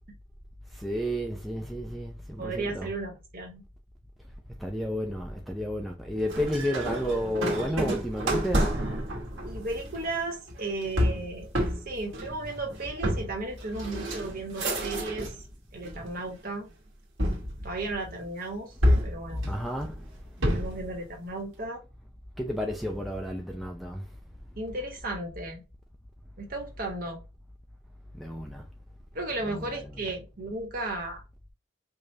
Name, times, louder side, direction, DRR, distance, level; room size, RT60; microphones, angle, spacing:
voice 1, 0.8-2.9 4.6-8.9 19.5-20.1 22.4-24.0 28.1-28.7 29.5-29.6, equal, ahead, 0.5 m, -32 dB
voice 2, 2.4-3.6 9.4-11.5 11.8-15.4 15.7-16.7 17.6-18.7 19.0-19.5 20.5-21.8 24.6-25.6 26.4-27.2 29.1-31.2, right 2 dB, 50° right, 1.3 m, -35 dB
sound 1, 6.3-15.4 15.8-16.5 17.2-18.3 18.8-20.9, equal, 90° right, 1.4 m, -29 dB
4.9 x 2.4 x 2.7 m
head